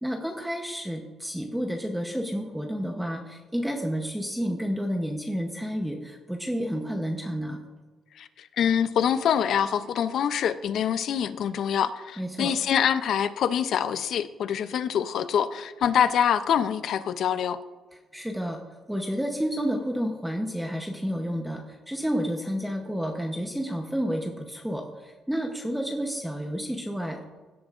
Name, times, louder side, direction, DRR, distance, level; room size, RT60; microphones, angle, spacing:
voice 1, 0.0-7.6 12.2-12.6 17.9-18.6 18.9-27.2, equal, 5° right, 2 dB, 0.8 m, -30 dB
voice 2, 8.6-17.6, left 8 dB, 65° left, 13 dB, 0.5 m, -25 dB
16.5 x 8.6 x 2.5 m, 1.3 s
cardioid pair, 130°, 0 cm